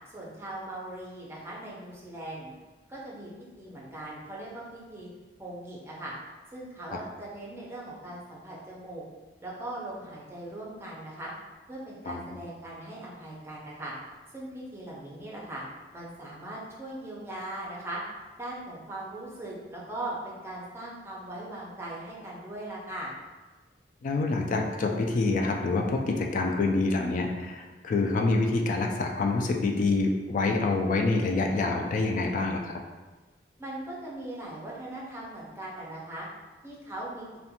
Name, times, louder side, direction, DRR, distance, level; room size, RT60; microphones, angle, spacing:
voice 1, 0.1-2.5 2.9-3.3 3.6-5.1 5.4-6.1 6.5-9.0 9.4-11.3 11.7-13.9 14.3-15.6 15.9-18.0 18.4-23.1 33.6-36.3 36.6-37.3, right 1 dB, 15° right, -5 dB, 0.6 m, -39 dB
voice 2, 24.0-32.8, left 3 dB, 45° left, 2 dB, 0.3 m, -26 dB
2.5 x 2.2 x 2.7 m, 1.2 s
head